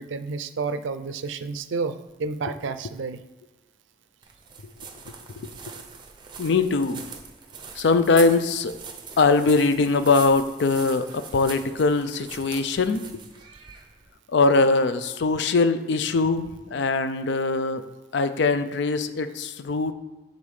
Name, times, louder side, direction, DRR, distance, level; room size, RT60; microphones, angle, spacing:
voice 1, 0.0-3.2, right 4 dB, 80° right, 11 dB, 0.4 m, -30 dB
sound 1, 4.2-14.1, right 6 dB, 25° right, 0.6 m, -42 dB
voice 2, 6.4-7.0 7.8-8.8 9.2-13.2 14.3-17.8 18.1-19.9, left 3 dB, 70° left, 11 dB, 0.4 m, -22 dB
7.2 x 3.9 x 4.8 m, 1.2 s
head